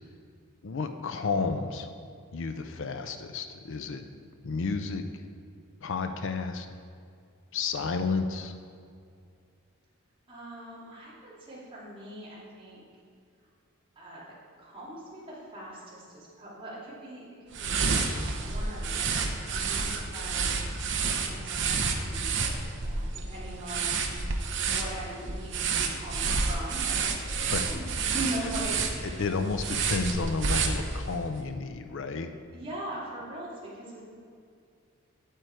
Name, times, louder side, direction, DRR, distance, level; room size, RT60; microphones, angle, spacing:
voice 1, 0.6-1.9 2.3-4.1 4.4-5.1 5.8-6.7 7.5-8.5 27.4-27.6 29.2-32.3, left 4 dB, 60° left, 7 dB, 0.5 m, -31 dB
voice 2, 10.3-12.8 14.0-14.2 14.6-17.2 17.6-18.1 18.4-20.5 21.1-22.5 22.8-24.0 24.6-27.1 27.3-29.2 32.5-34.0, right 1 dB, 25° right, -7 dB, 2.6 m, -41 dB
sound 1, 17.5-31.2, right 4 dB, 55° right, 0.8 m, -30 dB
9.0 x 7.7 x 4.6 m, 2.3 s
head